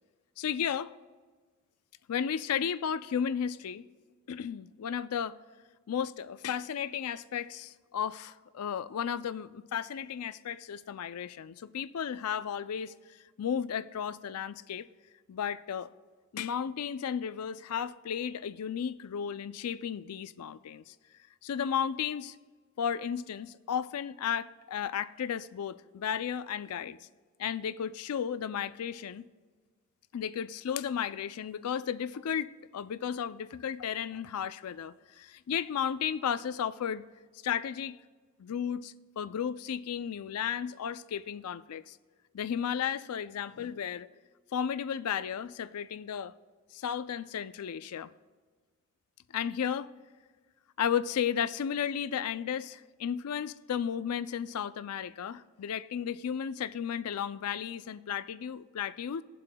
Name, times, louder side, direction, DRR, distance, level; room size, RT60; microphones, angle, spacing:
voice 1, 0.4-0.9 2.1-3.9 4.3-5.4 5.9-12.9 13.4-14.9 15.3-15.9 16.3-20.9 21.4-22.4 22.8-27.0 27.4-29.3 30.1-37.0 37.4-38.0 38.4-42.0 42.3-44.1 44.5-46.3 46.7-48.1 49.3-49.9 50.8-59.2, left 8 dB, 85° left, 0.4 m, -34 dB
20.0 x 7.6 x 2.2 m
head